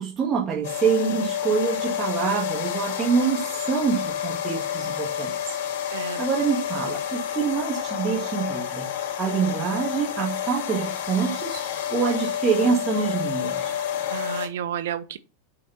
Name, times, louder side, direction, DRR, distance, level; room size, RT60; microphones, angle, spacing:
voice 1, 0.0-5.3 6.0-8.9 9.2-11.6 11.9-13.8, right 6 dB, 25° right, 2.4 m, -26 dB
sound 1, 0.6-14.5, left 9 dB, 75° left, 2.9 m, -29 dB
voice 2, 5.9-6.2 14.1-15.2, right 9 dB, 80° right, 0.8 m, -31 dB
7.0 x 5.9 x 5.3 m
hypercardioid pair, 115°, 0 cm